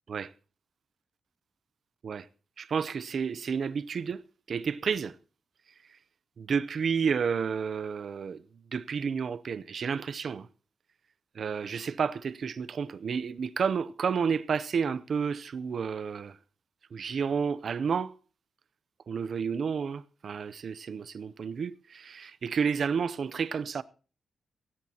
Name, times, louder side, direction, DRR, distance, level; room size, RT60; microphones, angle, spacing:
voice 1, 2.6-5.2 6.4-8.4 8.7-10.5 11.4-16.4 16.9-18.1 19.1-23.8, right 6 dB, 50° right, 0.6 m, -31 dB
17.0 x 16.0 x 2.8 m
wide cardioid pair, 170°, 0 cm